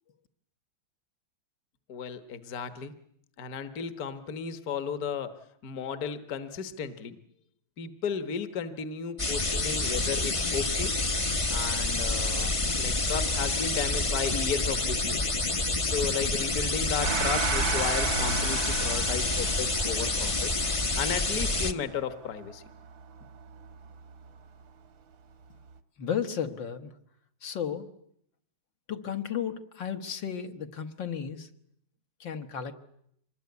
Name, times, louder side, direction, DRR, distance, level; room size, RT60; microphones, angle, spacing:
voice 1, 1.9-3.0 3.4-7.2 7.8-10.9 11.5-20.5 21.0-22.6, left 7 dB, 50° left, 10 dB, 1.7 m, -34 dB
sound 1, 9.2-21.7, left 2 dB, 25° left, 0.8 m, -28 dB
Gong, 17.0-24.0, right 7 dB, 75° right, 2.1 m, -34 dB
voice 2, 26.0-26.9 27.4-27.9 28.9-31.5 32.2-32.7, left 8 dB, 65° left, 6 dB, 2.1 m, -33 dB
25.5 x 21.0 x 9.6 m, 0.72 s
omnidirectional pair, 2.2 m